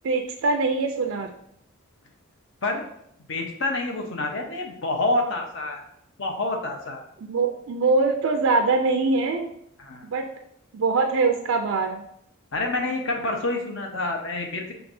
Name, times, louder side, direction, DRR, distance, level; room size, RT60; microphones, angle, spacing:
voice 1, 0.0-1.3 7.2-9.5 10.0-10.3 10.7-12.0, right 3 dB, 75° right, 4 dB, 0.4 m, -23 dB
voice 2, 3.3-5.8 6.2-7.0 9.8-10.1 12.5-14.7, left 2 dB, 60° left, 2 dB, 0.8 m, -27 dB
5.9 x 3.4 x 2.6 m, 0.72 s
head